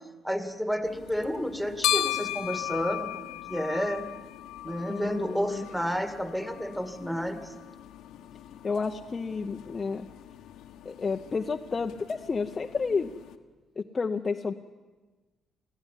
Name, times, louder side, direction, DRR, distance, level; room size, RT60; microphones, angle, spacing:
voice 1, 0.2-4.1 4.6-7.6, equal, 5° right, 8 dB, 2.0 m, -31 dB
sound 1, 0.8-13.4, left 13 dB, 85° left, 1.3 m, -37 dB
voice 2, 4.9-5.7 8.6-10.1 10.8-13.1 13.8-14.5, left 4 dB, 35° left, 3 dB, 0.8 m, -31 dB
20.5 x 14.5 x 9.9 m, 1.3 s
cardioid pair, 90°, 0 cm